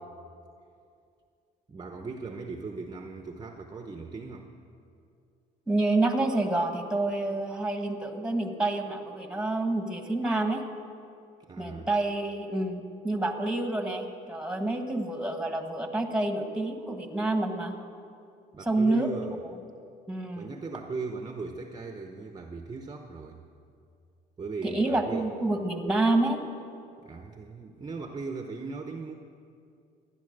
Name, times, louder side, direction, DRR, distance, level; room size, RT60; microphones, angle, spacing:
voice 1, 1.7-4.5 11.5-11.9 18.5-19.3 20.4-23.4 24.4-25.3 27.0-29.1, right 4 dB, 25° right, 4 dB, 0.9 m, -38 dB
voice 2, 5.7-10.6 11.6-17.7 18.6-19.1 20.1-20.5 24.6-26.4, right 2 dB, 5° right, 5 dB, 1.5 m, -28 dB
14.5 x 10.5 x 6.6 m, 2.4 s
cardioid pair, 110°, 17 cm